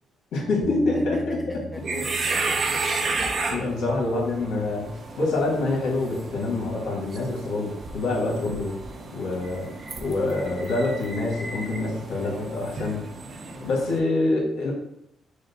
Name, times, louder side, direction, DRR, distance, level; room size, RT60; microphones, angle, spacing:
voice 1, 0.3-1.6 1.9-2.0 3.5-8.8 9.1-9.7 10.0-13.1 13.6-14.7, left 2 dB, 90° left, -2 dB, 1.3 m, -26 dB
Bass guitar, 0.6-6.9, left 2 dB, 70° right, 1.0 m, -43 dB
voice 2, 1.5-3.1 13.4-13.7, left 1 dB, 5° left, 3 dB, 0.4 m, -42 dB
sound 1, 1.7-14.0, right 3 dB, 45° right, 0.6 m, -33 dB
5.0 x 2.0 x 4.0 m, 0.78 s
cardioid pair, 90°, 0 cm